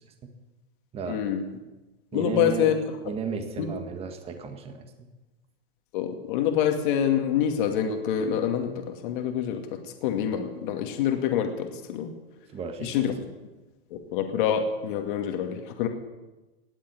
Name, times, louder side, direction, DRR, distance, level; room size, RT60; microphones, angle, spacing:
voice 1, 1.1-1.4 2.1-2.7 3.6-3.7 5.9-9.6 10.0-12.1 12.8-13.1 13.9-15.9, left 9 dB, 55° left, 5 dB, 2.4 m, -26 dB
voice 2, 2.1-2.7 3.0-4.9 12.5-13.0, right 5 dB, 20° right, 6 dB, 1.7 m, -34 dB
18.5 x 7.6 x 9.6 m, 1.1 s
supercardioid pair, 150°, 30 cm